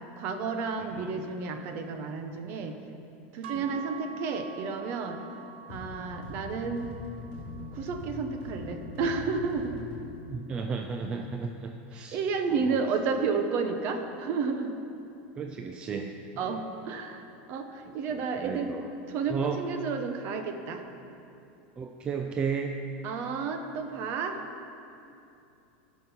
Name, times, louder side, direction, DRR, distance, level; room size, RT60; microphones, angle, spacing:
voice 1, 0.0-2.8 3.3-5.2 5.7-6.9 7.7-9.9 11.9-14.8 16.4-18.7 19.1-20.8 23.0-24.4, right 5 dB, 35° right, 6 dB, 0.8 m, -31 dB
voice 2, 0.9-1.2 10.3-12.2 12.6-12.8 15.4-16.2 18.1-18.9 19.3-19.6 21.8-22.8, right 6 dB, 15° right, 5 dB, 0.3 m, -34 dB
sound 1, 3.4-11.7, right 7 dB, 70° right, 0.6 m, -48 dB
sound 2, 5.7-10.2, left 3 dB, 30° left, 3.1 m, -42 dB
15.5 x 6.1 x 5.5 m, 2.7 s
supercardioid pair, 170°, 6 cm